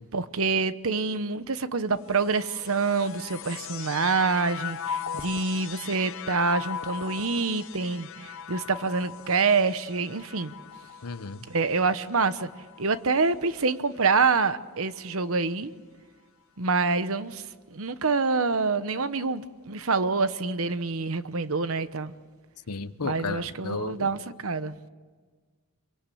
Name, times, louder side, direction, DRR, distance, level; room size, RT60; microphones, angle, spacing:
voice 1, 0.1-10.5 11.5-12.5 12.8-15.7 16.6-17.4 17.7-22.1 23.0-24.7, right 4 dB, 65° right, 13 dB, 1.0 m, -26 dB
sound 1, 2.0-13.5 14.2-15.0, left 8 dB, 60° left, 0.9 m, -39 dB
voice 2, 11.0-11.4 22.7-24.1, left 4 dB, 90° left, 13 dB, 1.0 m, -33 dB
26.5 x 23.5 x 8.5 m, 1.5 s
head